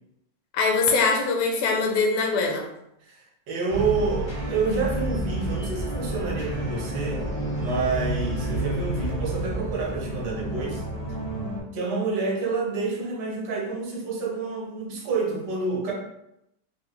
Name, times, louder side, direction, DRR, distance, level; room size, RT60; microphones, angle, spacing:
voice 1, 0.5-2.6, left 4 dB, 85° left, 1 dB, 1.4 m, -22 dB
voice 2, 3.1-10.8 11.7-15.9, right 4 dB, 65° right, -2 dB, 1.2 m, -28 dB
sound 1, 3.7-11.6, right 1 dB, 40° left, 0.4 m, -30 dB
3.3 x 2.1 x 3.1 m, 0.82 s
omnidirectional pair, 2.2 m